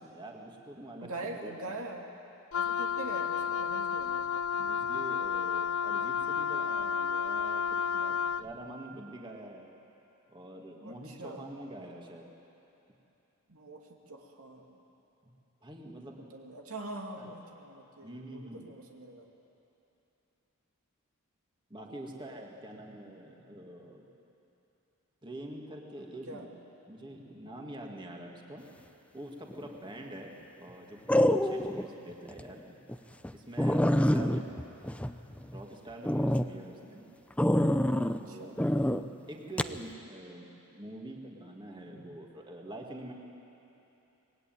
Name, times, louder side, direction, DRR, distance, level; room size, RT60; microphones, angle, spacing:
voice 1, 0.0-1.1 1.4-1.5 4.5-9.7 10.3-12.3 15.2-15.3 15.6-16.2 17.2-17.3 18.0-18.7 21.7-24.0 25.2-26.5 26.9-28.6 29.1-32.8 33.3-34.4 35.5-37.0 37.9-38.5 39.3-43.1, right 1 dB, 20° right, 0 dB, 2.2 m, -45 dB
voice 2, 1.0-2.1 2.5-4.4 10.8-11.5 13.5-14.8 16.3-19.3 21.9-22.4 26.3-26.5 34.0-34.4 38.1-38.6, right 2 dB, 85° right, 1 dB, 2.6 m, -44 dB
Wind instrument woodwind instrument, 2.5-8.5, left 7 dB, 75° left, 0.6 m, -31 dB
sound 1, 29.5-29.9 31.1-31.9 32.3-32.4 32.9-33.0 33.2-33.3 33.6-35.6 36.0-36.5 37.4-38.2 38.6-39.0 39.6-39.8, left 1 dB, 5° left, 0.6 m, -26 dB
24.5 x 20.5 x 9.3 m, 2.9 s
head